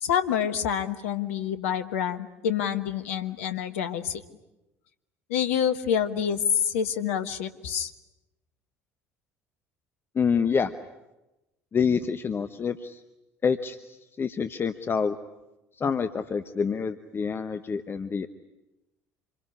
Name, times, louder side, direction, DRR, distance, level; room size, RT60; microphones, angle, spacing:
voice 1, 0.0-4.2 5.3-7.9, left 8 dB, 70° left, 9 dB, 1.3 m, -27 dB
voice 2, 10.1-10.7 11.7-13.0 13.4-15.2 15.8-18.3, left 6 dB, 30° left, 10 dB, 1.1 m, -27 dB
27.0 x 22.0 x 9.9 m, 0.98 s
figure-of-eight pair, 60°, 8 cm